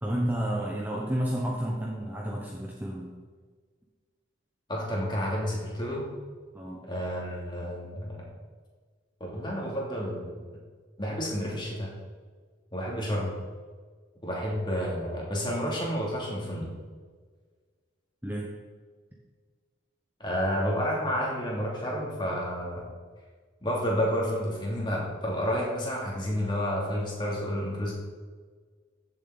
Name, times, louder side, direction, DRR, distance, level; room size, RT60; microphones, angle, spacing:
voice 1, 0.0-3.1 6.5-6.8 18.2-18.5, right 1 dB, 10° right, -3 dB, 1.0 m, -31 dB
voice 2, 4.7-6.1 6.8-8.2 9.2-10.3 11.0-11.9 12.7-13.3 14.2-16.7 20.2-22.9 23.6-27.9, equal, 25° left, -3 dB, 2.8 m, -30 dB
15.5 x 7.3 x 4.1 m, 1.5 s
head